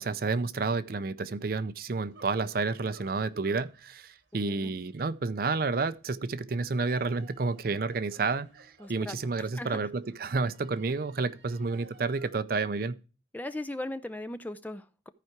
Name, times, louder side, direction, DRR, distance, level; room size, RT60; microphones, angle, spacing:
voice 1, 0.0-13.0, right 4 dB, 50° right, 0.5 m, -30 dB
sound 1, 1.9-12.3, right 3 dB, 70° right, 2.9 m, -58 dB
voice 2, 4.3-4.7 8.8-9.9 13.3-15.1, left 1 dB, 10° left, 0.4 m, -39 dB
14.0 x 4.8 x 4.5 m
head